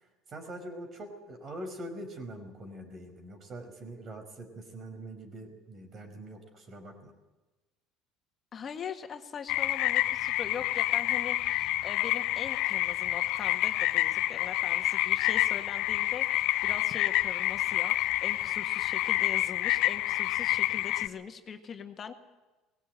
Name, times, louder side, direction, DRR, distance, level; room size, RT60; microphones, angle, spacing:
voice 1, 0.0-7.1, right 1 dB, 40° right, 6 dB, 5.2 m, -43 dB
voice 2, 8.5-22.1, left 7 dB, 40° left, 6 dB, 1.8 m, -42 dB
sound 1, 9.5-21.1, left 16 dB, 70° left, 0.9 m, -28 dB
19.5 x 17.0 x 9.1 m, 1.2 s
supercardioid pair, 85°, 0 cm